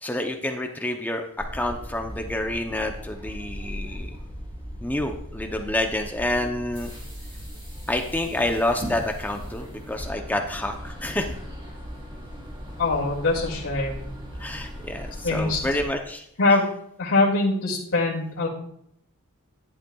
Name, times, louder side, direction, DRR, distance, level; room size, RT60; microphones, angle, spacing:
voice 1, 0.0-4.1 4.8-6.9 7.9-11.4 14.4-16.3, left 1 dB, 10° left, 4 dB, 0.6 m, -28 dB
sound 1, 1.4-15.9, equal, 25° right, 3.2 m, -38 dB
voice 2, 12.8-14.0 15.2-15.6 16.4-16.6 17.0-18.5, left 3 dB, 65° left, -7 dB, 2.1 m, -23 dB
11.5 x 10.5 x 2.3 m, 0.72 s
head